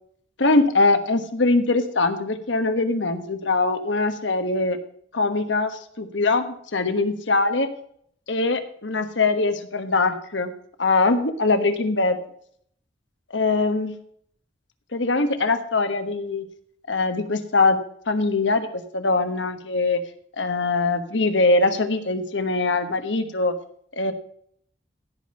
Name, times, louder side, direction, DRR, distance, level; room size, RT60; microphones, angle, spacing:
voice 1, 0.4-4.8 5.1-7.7 8.3-10.5 10.8-12.2 13.3-13.9 14.9-16.5 16.9-17.8 18.1-18.7 18.9-20.0 20.4-23.5 23.9-24.1, left 3 dB, 90° left, 9 dB, 1.4 m, -22 dB
16.0 x 5.3 x 5.7 m, 0.64 s
head